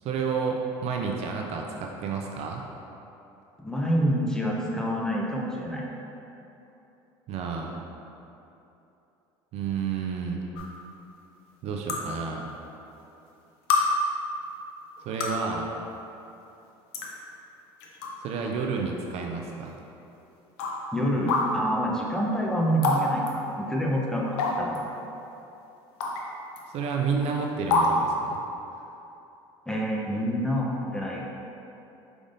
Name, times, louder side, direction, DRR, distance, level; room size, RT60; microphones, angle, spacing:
voice 1, 0.0-2.6 7.3-7.8 9.5-10.4 11.6-12.5 15.1-15.7 18.2-19.7 26.7-28.4, right 5 dB, 55° right, 1 dB, 0.4 m, -30 dB
voice 2, 3.6-5.8 20.9-24.8 29.7-31.4, equal, 5° left, -3 dB, 0.7 m, -27 dB
sound 1, 10.6-10.7 11.9-12.0 13.0-13.1 13.7-13.8 15.0-15.4 16.4-16.5 16.9-17.1 17.8-18.1 18.6-18.7 19.7-19.8 20.6-20.7 21.3-21.4 22.8-23.0 23.3-23.4 24.4-24.8 26.0-26.2 26.6-26.7 27.7-27.9, left 4 dB, 80° left, 0.6 m, -25 dB
5.0 x 3.5 x 2.6 m, 2.9 s
supercardioid pair, 85°, 13 cm